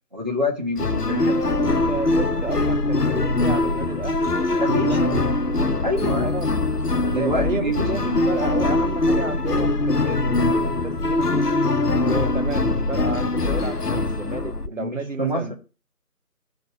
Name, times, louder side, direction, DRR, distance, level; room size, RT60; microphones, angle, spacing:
voice 1, 0.1-1.8 4.6-5.3 5.8-6.3 7.1-8.3 13.9-14.0 14.8-15.5, left 1 dB, 30° right, 1.4 m, -27 dB
sound 1, 0.8-14.7, left 2 dB, 80° left, 0.9 m, -22 dB
voice 2, 1.6-5.2 5.5-5.7 6.2-6.5 7.2-11.5 12.0-15.5, right 3 dB, 55° right, 0.7 m, -32 dB
12.5 x 5.3 x 3.7 m
figure-of-eight pair, 170°, 46 cm